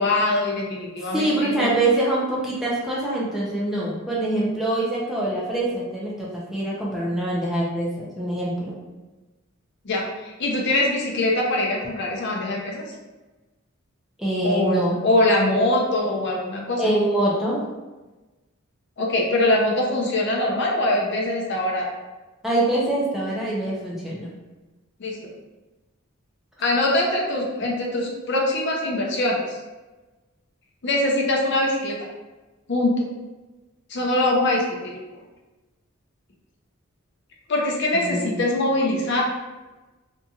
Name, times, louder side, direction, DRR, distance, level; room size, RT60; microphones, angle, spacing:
voice 1, 0.0-1.7 9.8-12.8 14.4-16.8 19.0-21.9 25.0-25.2 26.6-29.6 30.8-32.1 32.7-33.0 33.9-34.9 37.5-39.2, left 1 dB, 55° left, -1 dB, 0.5 m, -23 dB
voice 2, 1.0-8.8 14.2-14.9 16.8-17.6 22.4-24.3 37.9-38.4, right 1 dB, ahead, -6 dB, 0.5 m, -24 dB
2.8 x 2.6 x 2.3 m, 1.2 s
head